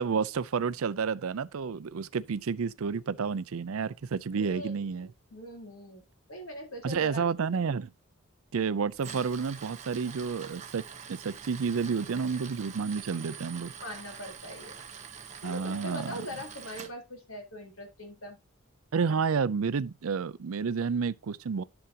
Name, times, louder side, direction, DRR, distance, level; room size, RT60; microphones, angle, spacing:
voice 1, 0.0-5.1 6.8-7.9 8.5-10.8 11.1-13.7 15.4-16.2 18.9-21.6, right 5 dB, 85° right, 0.5 m, -30 dB
voice 2, 4.3-7.3 13.8-14.8 15.4-18.4, left 1 dB, 85° left, 4.0 m, -42 dB
Tools, 8.9-16.9, right 6 dB, 35° right, 1.3 m, -45 dB
11.0 x 6.9 x 2.8 m
head